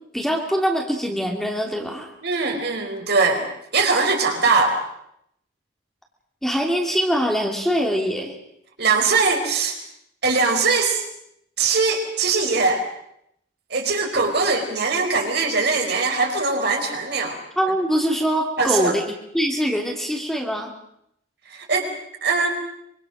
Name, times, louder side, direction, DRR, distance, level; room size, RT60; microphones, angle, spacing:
voice 1, 0.1-2.1 6.4-8.3 17.6-19.0 19.3-20.7, equal, ahead, 1 dB, 2.9 m, -23 dB
voice 2, 2.2-3.5 3.7-4.8 8.8-9.8 10.2-11.0 11.6-12.8 13.7-17.4 18.6-19.0 21.5-21.9 22.2-22.5, right 4 dB, 55° right, 3 dB, 4.7 m, -21 dB
25.0 x 24.5 x 6.5 m, 0.75 s
head